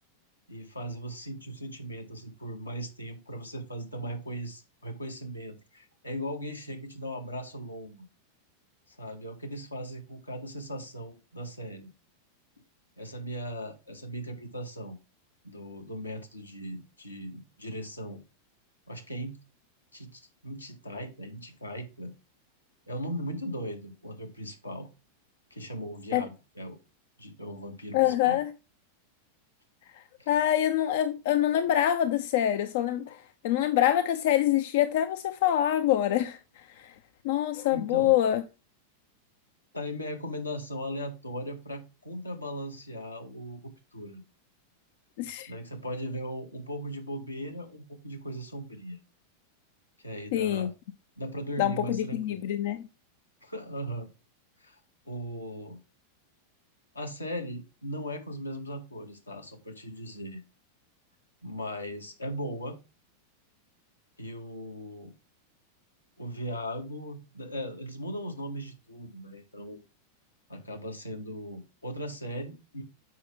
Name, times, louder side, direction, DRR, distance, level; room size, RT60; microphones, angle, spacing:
voice 1, 0.5-8.0 8.9-11.9 13.0-15.0 15.4-18.2 18.9-19.4 19.9-22.1 22.9-24.9 25.5-26.8 27.2-28.4 30.2-30.4 37.7-38.1 39.7-44.2 45.5-49.0 50.0-50.7 51.2-52.5 53.4-54.1 54.6-54.8 55.0-55.8 56.9-60.4 61.4-62.8 64.2-65.1 66.2-69.8 70.5-72.8, equal, 85° left, 1.6 m, -38 dB
voice 2, 27.9-28.5 30.3-36.9 37.2-38.4 45.2-45.5 50.3-50.7 51.6-52.8, left 12 dB, 50° left, 0.5 m, -25 dB
7.5 x 5.6 x 3.3 m
figure-of-eight pair, 90°, 0 cm